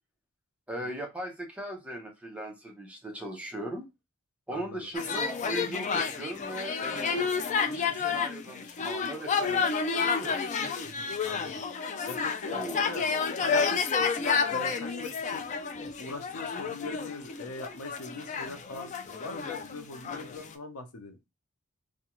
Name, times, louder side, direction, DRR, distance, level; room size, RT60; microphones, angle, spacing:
voice 1, 0.7-3.9 4.5-10.4 12.5-12.8, right 1 dB, 5° right, 0.6 m, -38 dB
voice 2, 4.5-4.9 10.8-13.1 13.4-15.4 16.0-21.2, left 3 dB, 75° left, 0.6 m, -41 dB
sound 1, 4.9-20.5, left 5 dB, 35° left, 0.3 m, -30 dB
2.4 x 2.2 x 2.9 m
head